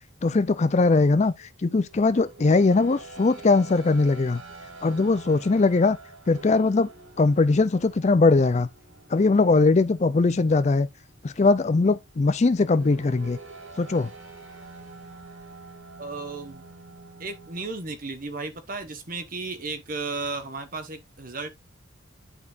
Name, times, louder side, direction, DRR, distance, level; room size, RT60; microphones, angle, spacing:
voice 1, 0.2-4.4 4.8-6.0 6.3-6.9 7.2-8.7 9.1-10.9 11.2-13.4 13.8-14.1, left 3 dB, 35° left, 0.4 m, -20 dB
sound 1, 1.3-17.7, right 3 dB, 75° right, 1.7 m, -47 dB
voice 2, 16.0-16.6 17.2-21.5, right 3 dB, 45° right, 1.3 m, -34 dB
11.0 x 4.3 x 2.5 m
head